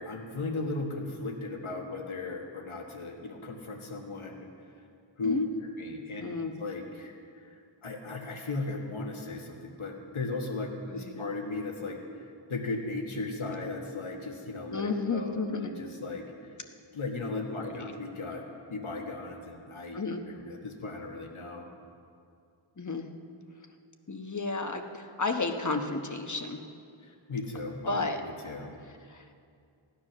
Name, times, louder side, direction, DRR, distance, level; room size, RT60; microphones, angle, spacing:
voice 1, 0.0-4.5 5.2-5.4 5.8-6.2 6.6-7.1 7.4-7.5 7.8-12.0 12.5-16.3 16.9-20.0 20.3-21.7 27.0-28.7, left 3 dB, 80° left, 2 dB, 1.8 m, -36 dB
voice 2, 6.2-6.5 10.9-11.2 14.7-15.7 17.5-17.9 19.9-20.2 22.8-23.1 24.1-26.6 27.9-28.2 29.1-29.2, left 3 dB, 35° left, 5 dB, 1.1 m, -32 dB
16.0 x 10.0 x 6.2 m, 2.4 s
wide cardioid pair, 90°, 48 cm